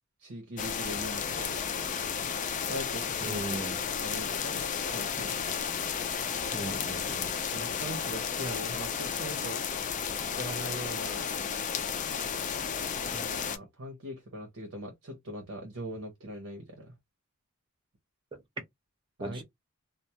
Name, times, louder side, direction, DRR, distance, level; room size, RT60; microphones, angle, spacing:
voice 1, 0.2-1.8 2.5-5.5 7.5-9.6 10.3-11.3 13.1-16.9 19.2-19.4, right 1 dB, 80° right, 0.8 m, -41 dB
sound 1, 0.6-13.6, left 7 dB, 35° left, 0.3 m, -33 dB
voice 2, 3.2-3.8 6.5-7.3 18.3-18.4 19.2-19.4, right 2 dB, 25° right, 0.5 m, -38 dB
2.2 x 2.1 x 2.8 m
head